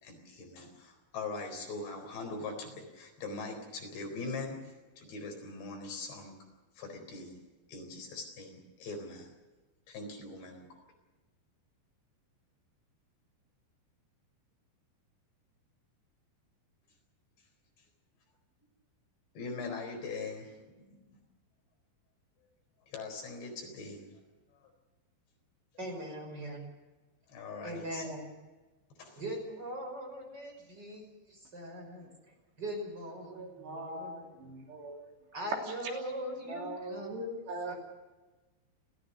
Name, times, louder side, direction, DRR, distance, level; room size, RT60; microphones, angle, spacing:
voice 1, 0.0-6.3 6.8-7.4 7.7-9.3 9.9-10.7 19.4-20.6 22.9-24.1 24.5-24.7 27.3-28.1 29.0-29.2, left 3 dB, 70° left, 4 dB, 6.2 m, -41 dB
voice 2, 25.8-26.6 27.6-28.3 29.1-32.1 32.6-34.5 35.3-37.4 37.7-37.8, right 1 dB, 20° right, 2 dB, 5.9 m, -41 dB
voice 3, 33.2-35.1 35.7-35.8 36.5-37.7, right 1 dB, 70° right, 1 dB, 5.2 m, -41 dB
29.5 x 14.5 x 6.6 m, 1.2 s
omnidirectional pair, 5.2 m